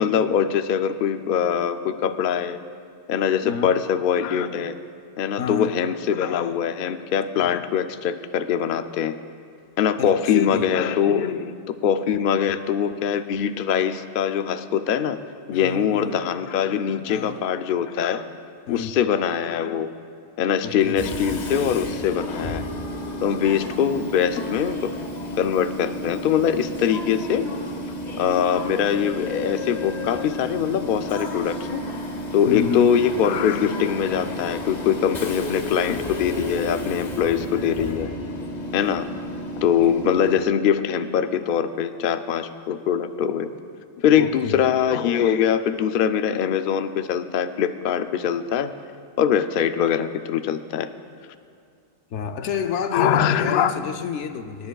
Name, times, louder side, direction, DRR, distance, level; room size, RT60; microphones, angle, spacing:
voice 1, 0.0-2.6 3.1-4.7 5.2-9.1 9.8-11.5 11.8-15.2 15.5-18.2 18.7-19.9 20.4-22.6 23.2-25.0 25.3-27.5 28.2-31.8 32.3-38.1 38.7-39.1 39.6-43.5 44.0-48.7 49.2-50.9 52.9-53.8, left 8 dB, 60° left, 10 dB, 0.6 m, -22 dB
voice 2, 5.4-5.7 10.0-10.6 15.5-16.2 17.1-17.4 18.7-19.0 20.6-21.1 32.5-32.9 44.2-44.6 52.1-54.7, left 7 dB, 85° left, 8 dB, 0.9 m, -29 dB
Train / Subway metro underground, 21.0-40.4, left 1 dB, 40° left, 0.9 m, -32 dB
25.0 x 10.0 x 2.3 m, 2.3 s
omnidirectional pair, 1.2 m